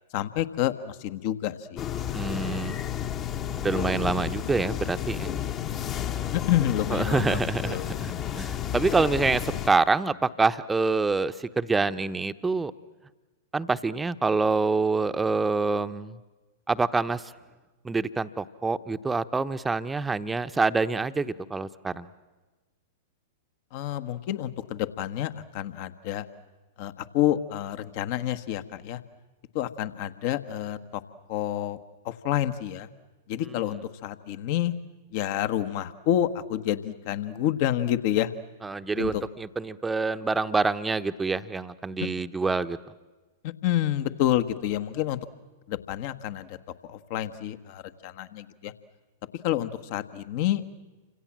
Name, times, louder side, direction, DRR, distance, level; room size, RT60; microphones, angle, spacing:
voice 1, 0.1-2.6 6.3-7.9 23.7-26.3 26.8-29.0 29.5-31.0 31.3-31.8 32.0-32.9 33.3-34.7 35.1-38.3 38.9-39.2 43.4-45.2 45.7-46.6 46.8-48.7 49.4-50.7, left 12 dB, 50° left, 11 dB, 1.5 m, -29 dB
sound 1, 1.8-9.7, left 10 dB, 35° left, 1.4 m, -31 dB
voice 2, 2.1-2.8 3.5-5.3 6.9-12.7 13.5-16.2 16.7-17.2 17.8-22.1 38.6-42.8, right 3 dB, 10° right, 11 dB, 1.0 m, -26 dB
29.5 x 26.0 x 7.5 m, 1.2 s
figure-of-eight pair, 100°, 0 cm